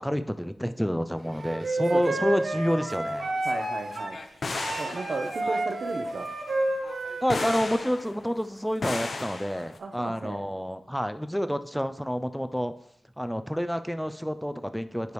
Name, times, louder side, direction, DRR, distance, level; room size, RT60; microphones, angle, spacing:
voice 1, 0.0-3.3 7.2-12.7 13.2-15.1, equal, ahead, 10 dB, 0.4 m, -29 dB
Wind instrument woodwind instrument, 1.4-4.2 4.5-7.7, right 2 dB, 90° right, 1.5 m, -30 dB
voice 2, 1.9-2.3 3.4-4.2 4.8-6.3 9.8-10.4, right 3 dB, 70° right, 5 dB, 0.9 m, -35 dB
sound 1, 3.0-3.7 3.9-8.5 8.8-9.8, left 3 dB, 60° left, 0.7 m, -36 dB
9.4 x 5.0 x 3.1 m, 0.69 s
wide cardioid pair, 100°, 0 cm